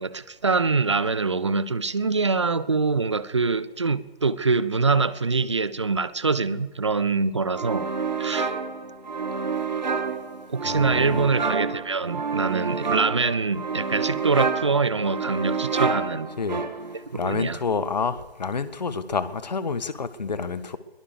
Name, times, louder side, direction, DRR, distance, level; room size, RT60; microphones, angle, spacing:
voice 1, 0.0-7.9 8.2-8.5 10.5-16.3 17.1-17.6, right 4 dB, 30° right, 0.7 m, -24 dB
sound 1, 7.6-17.1, right 5 dB, 45° right, 1.9 m, -28 dB
voice 2, 10.6-11.3 16.4-16.6 16.9-20.8, left 5 dB, 45° left, 1.6 m, -29 dB
22.0 x 19.0 x 6.8 m
figure-of-eight pair, 150°, 31 cm